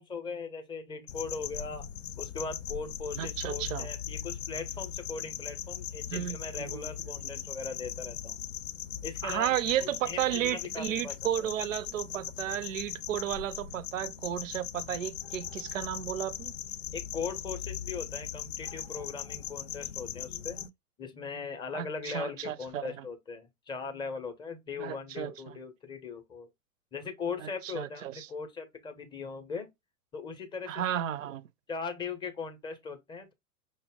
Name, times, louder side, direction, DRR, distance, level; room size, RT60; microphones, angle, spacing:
voice 1, 0.0-1.9 2.2-8.4 9.0-11.1 16.9-20.6 21.0-26.5 26.9-29.7 30.1-31.0 31.7-33.3, left 5 dB, 10° left, 0.6 m, -39 dB
sound 1, 1.1-20.7, left 9 dB, 55° left, 0.6 m, -39 dB
voice 2, 3.2-3.9 6.1-6.9 7.2-7.4 9.2-16.6 21.7-23.0 24.8-25.6 27.4-28.3 30.7-31.5, right 11 dB, 60° right, 0.5 m, -33 dB
5.6 x 2.1 x 3.5 m
figure-of-eight pair, 95°, 44 cm